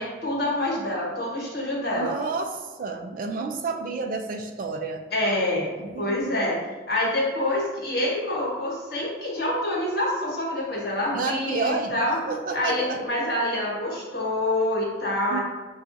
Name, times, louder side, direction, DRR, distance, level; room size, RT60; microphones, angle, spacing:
voice 1, 0.0-2.1 5.1-6.6 6.9-12.2 12.5-15.4, left 1 dB, 60° left, -4 dB, 1.2 m, -26 dB
voice 2, 1.9-5.0 5.8-6.3 11.1-13.0 15.3-15.4, right 4 dB, 50° right, 4 dB, 0.4 m, -30 dB
5.9 x 2.3 x 2.6 m, 1.4 s
head